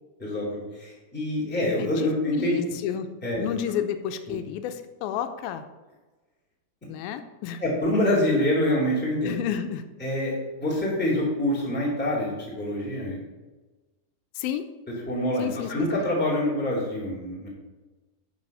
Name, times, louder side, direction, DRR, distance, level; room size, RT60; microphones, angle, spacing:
voice 1, 0.2-2.5 3.2-3.4 4.3-4.4 7.6-9.3 10.0-13.2 15.1-17.5, left 1 dB, 5° left, -5 dB, 1.9 m, -26 dB
voice 2, 2.3-3.1 3.4-5.6 6.9-7.6 9.2-9.8 14.4-14.6 15.4-16.1, left 10 dB, 85° left, 9 dB, 2.5 m, -31 dB
10.5 x 4.8 x 5.4 m, 1.2 s
omnidirectional pair, 4.2 m